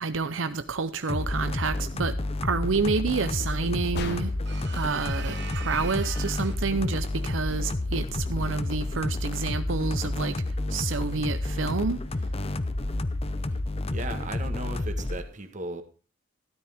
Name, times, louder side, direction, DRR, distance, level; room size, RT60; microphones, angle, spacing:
voice 1, 0.0-2.1 2.4-4.3 4.7-10.4 10.7-12.0, right 4 dB, 85° right, 0.7 m, -29 dB
sound 1, 1.1-15.2, left 2 dB, 30° left, 0.7 m, -30 dB
sound 2, 3.9-4.7, left 3 dB, 60° left, 1.4 m, -36 dB
sound 3, 4.5-6.7, right 8 dB, 60° right, 1.1 m, -42 dB
voice 2, 13.9-15.8, right 2 dB, 40° right, 1.5 m, -36 dB
13.0 x 12.5 x 3.6 m
head